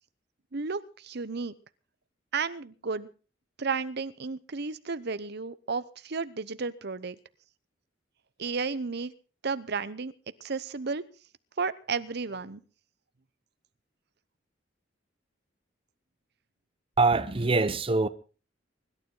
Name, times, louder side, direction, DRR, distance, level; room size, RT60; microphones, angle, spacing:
voice 1, 0.5-1.5 2.3-3.1 3.6-7.2 8.4-9.1 9.4-10.1 10.4-11.0 11.6-12.6, right 4 dB, 60° right, 0.9 m, -33 dB
voice 2, 17.0-18.1, right 3 dB, 30° right, 0.8 m, -24 dB
24.5 x 12.0 x 3.8 m
head